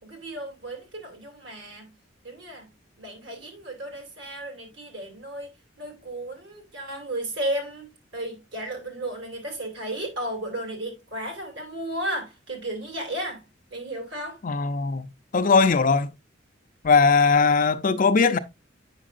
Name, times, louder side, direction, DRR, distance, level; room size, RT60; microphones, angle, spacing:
voice 1, 0.0-2.0 2.2-2.7 3.0-5.5 5.8-13.4 13.7-14.4, right 1 dB, 70° right, 2.9 m, -34 dB
voice 2, 14.4-15.1 15.3-16.1 16.8-18.4, left 4 dB, 45° left, 0.5 m, -19 dB
8.4 x 5.8 x 2.5 m
head